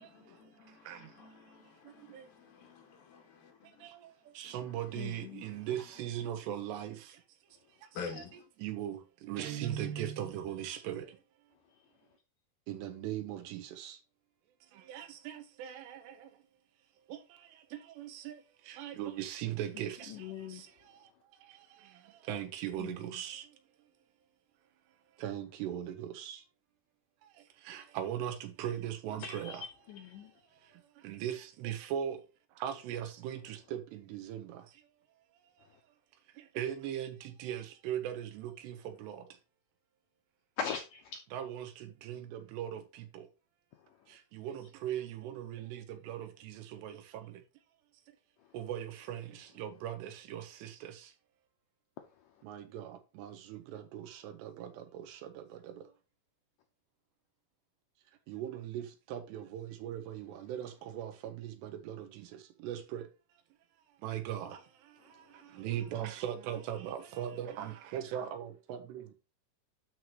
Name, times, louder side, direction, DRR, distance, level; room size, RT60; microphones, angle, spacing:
voice 1, 0.0-3.9 4.4-5.9 7.9-8.5, left 5 dB, 60° left, 3.6 m, -49 dB
voice 2, 0.7-1.3 1.8-2.3 3.6-7.2 7.8-8.2 8.6-11.2 12.7-14.0 14.7-16.3 17.1-23.6 25.2-26.4 27.2-29.7 30.2-32.2 32.5-34.8 36.3-39.4 41.3-43.3 44.1-47.4 48.1-48.2 48.5-51.1 52.4-55.9 58.3-63.1 64.0-69.1, right 10 dB, 85° right, 3.1 m, -40 dB
voice 3, 5.0-5.4 20.1-20.6 22.8-23.0 29.2-30.3 40.6-41.2, left 7 dB, 85° left, 1.9 m, -40 dB
Guitar, 9.4-10.5, right 8 dB, 65° right, 2.2 m, -40 dB
12.0 x 4.8 x 2.9 m
omnidirectional pair, 4.8 m